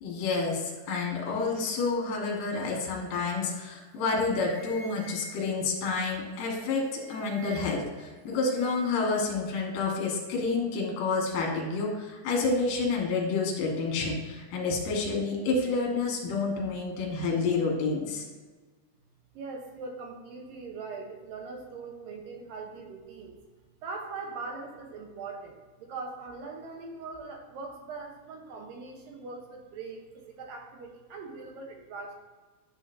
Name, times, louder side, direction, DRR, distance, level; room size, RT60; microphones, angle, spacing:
voice 1, 0.0-18.3, left 4 dB, 65° left, -1 dB, 2.9 m, -29 dB
sound 1, 3.7-3.8 4.0-5.7 6.5-8.0 8.2-9.0, right 2 dB, 45° right, 1.9 m, -50 dB
voice 2, 19.3-23.4 23.8-32.1, right 4 dB, 70° right, 2 dB, 2.3 m, -41 dB
10.5 x 6.2 x 2.6 m, 1.3 s
omnidirectional pair, 4.8 m